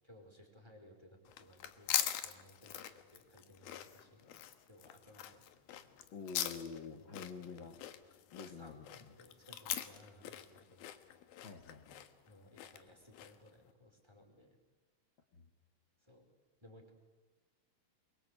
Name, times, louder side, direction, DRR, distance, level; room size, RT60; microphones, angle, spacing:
voice 1, 0.0-5.9 7.0-7.7 8.4-10.9 12.3-14.6 16.0-16.3 16.6-16.9, left 1 dB, 5° right, 3 dB, 4.7 m, -61 dB
sound 1, 1.2-13.5, left 11 dB, 70° left, 2.9 m, -42 dB
voice 2, 6.1-7.8 8.3-9.1 11.4-12.0 15.3-15.4, left 5 dB, 45° left, 3 dB, 1.6 m, -48 dB
26.5 x 23.5 x 8.4 m, 1.3 s
omnidirectional pair, 4.8 m